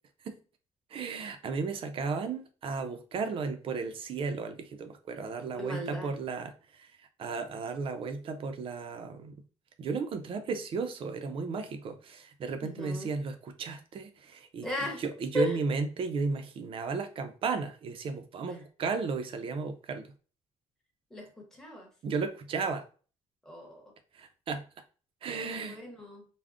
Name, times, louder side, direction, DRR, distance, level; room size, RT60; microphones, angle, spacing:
voice 1, 0.9-9.4 9.8-20.1 22.0-22.8 24.1-24.7 25.2-25.8, right 4 dB, 45° right, 0.4 m, -34 dB
voice 2, 5.6-6.1 12.6-13.1 14.6-15.0 15.3-15.6 18.5-18.6 21.1-21.9 23.4-23.8 25.3-26.2, left 1 dB, 5° left, 0.8 m, -37 dB
3.5 x 2.0 x 2.4 m
cardioid pair, 150°, 13 cm